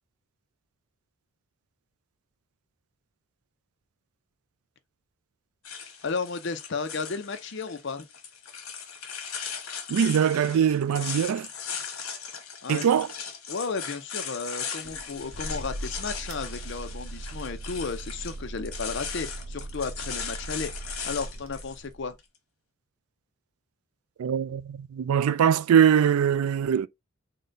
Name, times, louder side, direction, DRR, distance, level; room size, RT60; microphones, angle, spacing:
sound 1, 5.6-21.8, left 7 dB, 80° left, 1.1 m, -38 dB
voice 1, 6.0-8.1 12.6-12.9 13.5-20.7 21.0-22.2, left 4 dB, 55° left, 0.6 m, -33 dB
voice 2, 9.9-11.5 12.7-13.1 24.2-26.9, right 8 dB, 90° right, 0.3 m, -22 dB
sound 2, 14.8-22.1, right 1 dB, 65° right, 0.7 m, -39 dB
3.8 x 2.2 x 3.8 m
head